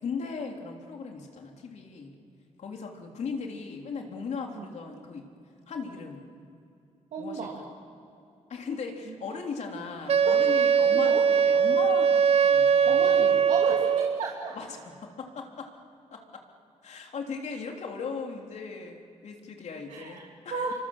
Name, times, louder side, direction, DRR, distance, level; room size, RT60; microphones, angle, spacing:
voice 1, 0.0-2.1 2.6-5.3 5.7-6.2 7.2-7.7 8.5-13.4 14.5-15.7 16.1-16.4 16.8-20.7, left 5 dB, 65° left, 2 dB, 3.3 m, -38 dB
voice 2, 7.1-7.6 9.1-9.4 9.8-9.9 10.3-10.4 10.6-11.3 12.9-14.5 19.9-20.2 20.5-20.7, right 5 dB, 85° right, -2 dB, 2.9 m, -34 dB
Wind instrument woodwind instrument, 10.1-14.2, right 7 dB, 55° right, 0.7 m, -21 dB
27.5 x 25.0 x 7.3 m, 2.7 s
cardioid pair, 110°, 12 cm